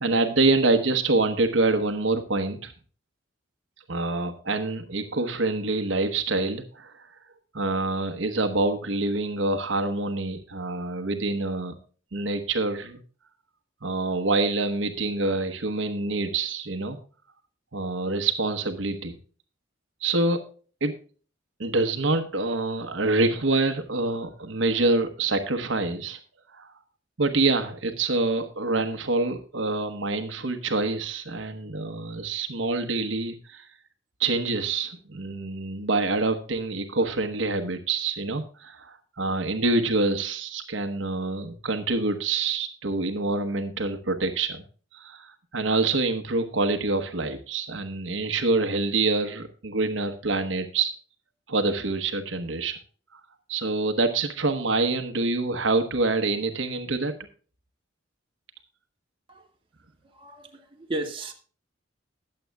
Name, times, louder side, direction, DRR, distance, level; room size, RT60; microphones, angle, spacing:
voice 1, 0.0-2.7 3.9-7.1 7.5-11.7 12.1-13.0 13.8-17.0 17.7-19.2 20.0-20.4 20.8-20.9 21.6-26.2 26.5-26.7 27.2-33.7 34.2-44.6 44.9-50.9 51.5-52.8 53.1-53.2 53.5-57.1, right 3 dB, 70° right, 8 dB, 1.1 m, -26 dB
voice 2, 60.0-61.3, right 2 dB, 25° right, 2 dB, 1.9 m, -35 dB
20.5 x 7.7 x 2.3 m, 0.40 s
head